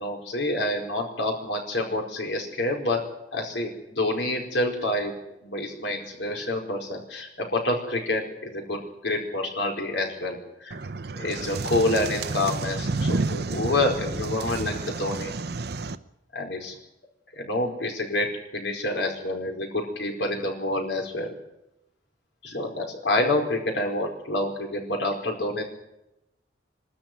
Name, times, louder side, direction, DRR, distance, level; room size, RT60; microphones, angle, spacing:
voice 1, 0.0-3.0 3.3-5.1 5.4-10.8 11.2-15.3 16.3-16.8 17.4-18.3 18.5-21.3 22.4-25.6, left 1 dB, 75° left, 2 dB, 4.7 m, -28 dB
sound 1, 10.7-16.0, right 3 dB, 60° right, 0.8 m, -30 dB
23.5 x 13.0 x 9.2 m, 0.88 s
head